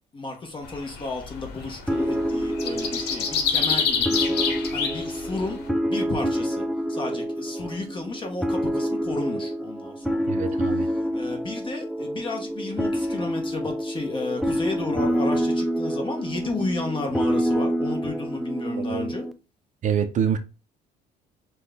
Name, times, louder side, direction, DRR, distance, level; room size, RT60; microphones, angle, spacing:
voice 1, 0.1-6.6 6.9-10.3 10.8-19.3, left 3 dB, 30° left, 1.0 m, -33 dB
sound 1, 0.6-5.6, left 6 dB, 75° left, 1.0 m, -26 dB
sound 2, 1.9-19.3, equal, ahead, 0.4 m, -27 dB
voice 2, 10.3-10.9 18.8-19.1 19.8-20.4, right 8 dB, 50° right, 0.6 m, -26 dB
6.0 x 2.3 x 3.5 m
cardioid pair, 110°, 17 cm